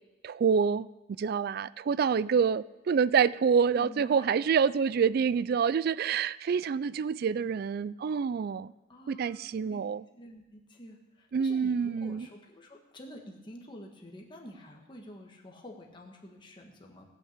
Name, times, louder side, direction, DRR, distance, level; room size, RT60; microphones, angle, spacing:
voice 1, 0.2-8.7 9.1-10.0 11.3-12.3, right 6 dB, 55° right, 20 dB, 0.3 m, -27 dB
voice 2, 3.7-4.3 8.9-9.8 10.1-17.0, equal, 25° left, 0 dB, 1.4 m, -48 dB
17.5 x 5.8 x 7.3 m, 1.1 s
head